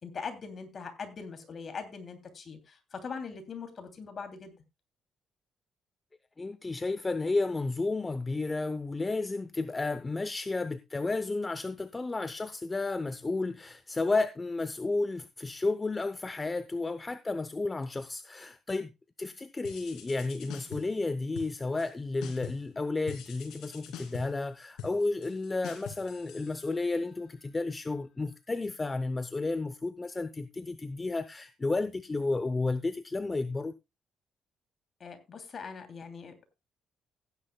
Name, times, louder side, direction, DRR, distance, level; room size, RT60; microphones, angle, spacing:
voice 1, 0.0-4.5 35.0-36.3, left 5 dB, 45° left, 2.9 m, -41 dB
voice 2, 6.4-18.9 19.2-33.7, left 3 dB, 25° left, 0.7 m, -32 dB
sound 1, 19.6-21.0 21.3-21.9 22.2-22.7 23.1-27.1, left 8 dB, 90° left, 2.8 m, -45 dB
16.0 x 10.0 x 2.3 m
cardioid pair, 90°, 0 cm